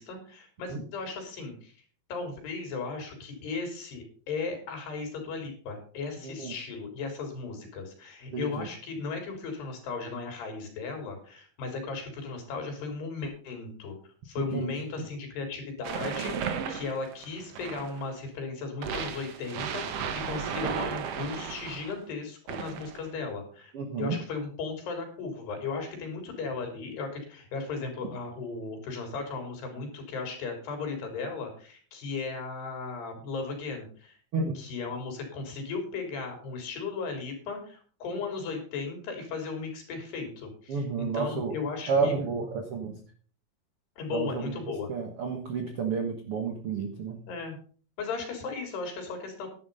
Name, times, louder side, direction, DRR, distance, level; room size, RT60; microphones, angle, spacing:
voice 1, 0.0-1.8 2.1-14.0 14.3-23.7 24.0-34.2 34.6-42.2 44.0-44.9 47.3-47.6 48.0-49.5, left 4 dB, 75° left, 4 dB, 5.6 m, -36 dB
voice 2, 6.2-6.5 8.3-8.7 14.4-14.7 23.7-24.2 34.3-34.6 40.7-41.5 41.9-42.9 44.1-44.5 44.9-47.2, right 5 dB, 65° right, 5 dB, 1.4 m, -30 dB
sound 1, 15.8-18.1 18.8-22.0 22.5-23.1, right 7 dB, 85° right, 1.3 m, -34 dB
10.5 x 10.5 x 5.4 m, 0.42 s
omnidirectional pair, 4.8 m